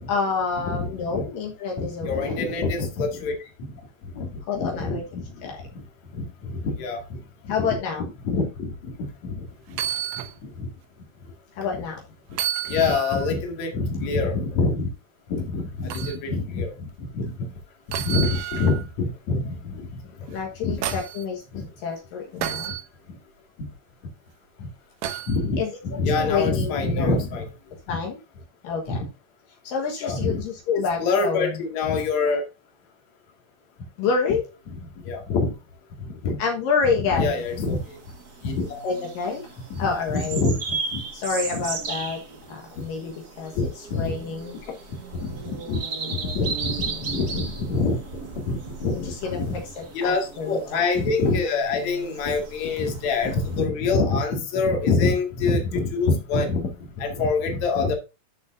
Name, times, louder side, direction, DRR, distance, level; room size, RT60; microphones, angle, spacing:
voice 1, 0.1-2.5 4.5-5.0 5.4-5.6 7.5-8.1 11.6-12.0 20.3-22.7 25.6-25.8 26.1-27.2 27.9-28.2 28.6-29.1 29.6-31.6 34.0-34.4 36.4-37.4 38.8-39.5 39.8-40.4 41.1-42.2 42.5-44.6 46.9-47.0 48.9-49.4 49.8-50.8, left 5 dB, 75° left, 3.1 m, -28 dB
voice 2, 0.6-1.2 1.8-3.3 4.1-5.5 6.1-7.2 7.4-7.8 8.2-9.0 9.2-9.4 9.7-9.8 10.4-10.7 11.7-11.8 12.6-14.9 15.3-16.9 17.1-17.3 17.9-19.9 20.6-20.8 21.5-21.7 24.6-24.7 25.3-27.5 27.9-28.0 28.9-29.0 30.0-30.4 31.0-32.4 35.0-35.5 36.0-36.4 36.9-38.0 38.4-38.8 39.7-40.6 40.9-41.0 41.5-41.6 43.5-44.1 45.2-45.8 46.0-48.0 48.4-49.6 49.9-56.7 57.0-57.9, left 3 dB, 55° left, 3.2 m, -25 dB
sound 1, 9.7-10.4 10.8-10.9 12.3-13.3 15.9-16.2 17.9-18.9 20.3-21.2 22.4-22.8 25.0-25.4 27.2-27.3, right 11 dB, 70° right, 1.9 m, -30 dB
sound 2, 37.3-53.6, right 4 dB, 40° right, 1.3 m, -36 dB
12.5 x 7.2 x 2.6 m
omnidirectional pair, 4.1 m